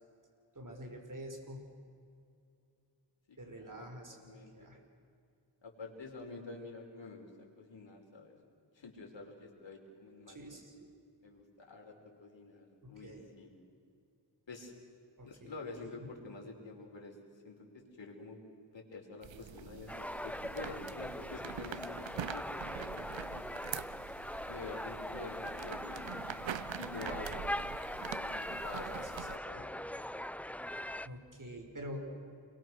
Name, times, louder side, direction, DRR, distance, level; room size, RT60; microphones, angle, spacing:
voice 1, 0.5-1.7 3.4-4.8 10.3-10.9 12.8-13.3 15.2-16.1 28.8-29.7 31.0-32.0, equal, 45° right, 3 dB, 5.2 m, -48 dB
voice 2, 3.3-3.8 4.1-4.5 5.6-8.3 8.7-10.4 11.2-11.9 12.2-13.5 14.5-14.7 15.2-17.2 17.4-18.4 18.6-23.4 24.5-26.2 26.8-27.4 28.1-28.9 29.3-29.7, left 3 dB, 75° left, 1 dB, 4.8 m, -48 dB
sound 1, 19.2-29.4, right 9 dB, 80° right, 0.8 m, -45 dB
sound 2, 19.9-31.1, left 1 dB, 5° left, 0.5 m, -41 dB
29.0 x 23.0 x 6.3 m, 2.4 s
wide cardioid pair, 75°, 45 cm